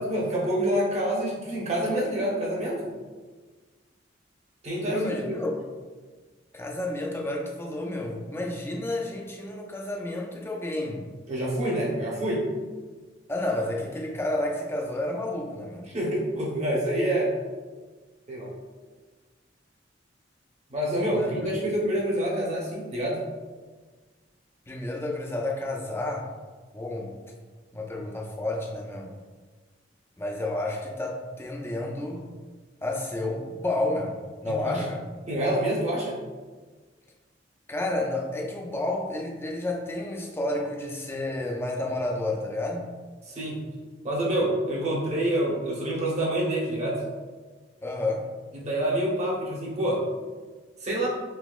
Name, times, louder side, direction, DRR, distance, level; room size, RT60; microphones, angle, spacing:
voice 1, 0.0-2.8 4.6-5.4 11.3-12.5 15.9-17.3 18.3-18.5 20.7-23.2 34.4-34.8 35.3-36.2 43.3-43.6 44.0-47.0 48.6-50.0 50.8-51.1, right 1 dB, 35° right, -4 dB, 0.9 m, -27 dB
voice 2, 4.9-5.6 6.5-11.1 13.3-15.9 21.1-21.3 24.7-26.3 26.7-27.2 27.7-29.1 30.2-32.3 32.8-35.1 37.7-42.9 47.8-48.3, left 2 dB, 15° left, 0 dB, 0.4 m, -30 dB
3.9 x 2.8 x 2.3 m, 1.4 s
head